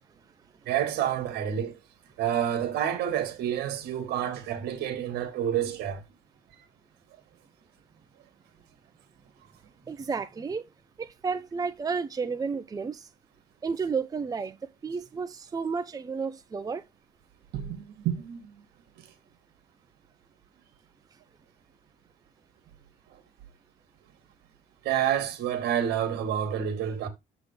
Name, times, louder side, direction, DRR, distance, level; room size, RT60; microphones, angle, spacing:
voice 1, 0.7-1.8 2.2-6.0 17.5-18.5 23.1-23.2 24.8-27.1, right 10 dB, 80° right, 2.0 m, -29 dB
voice 2, 9.9-10.6 11.0-13.1 13.6-14.6 14.8-16.8, right 5 dB, 20° right, 0.7 m, -32 dB
7.6 x 4.1 x 4.8 m
cardioid pair, 110°, 17 cm